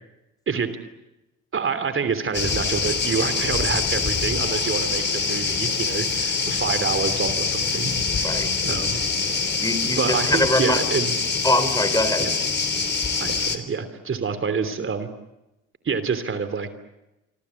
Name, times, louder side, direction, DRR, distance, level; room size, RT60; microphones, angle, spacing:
voice 1, 1.5-9.0 10.0-11.1 12.2-12.3 13.2-15.1 15.8-16.7, right 5 dB, 45° right, 11 dB, 3.1 m, -27 dB
sound 1, 2.3-13.6, left 5 dB, 35° left, 3.7 m, -24 dB
voice 2, 9.6-10.8 11.4-12.3, left 1 dB, 10° left, 11 dB, 4.2 m, -23 dB
27.0 x 25.0 x 8.3 m, 0.96 s
cardioid pair, 90°, 30 cm